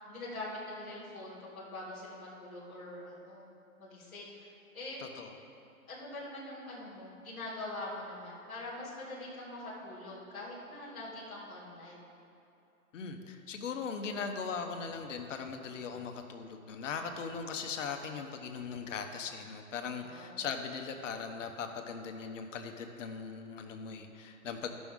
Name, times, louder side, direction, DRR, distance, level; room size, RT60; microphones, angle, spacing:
voice 1, 0.1-4.5 4.7-5.0 5.9-12.0 20.0-20.4, left 2 dB, ahead, -16 dB, 0.5 m, -44 dB
voice 2, 5.0-5.3 12.9-24.7, left 5 dB, 55° left, 5 dB, 0.9 m, -39 dB
12.5 x 6.2 x 3.6 m, 2.7 s
hypercardioid pair, 155°, 44 cm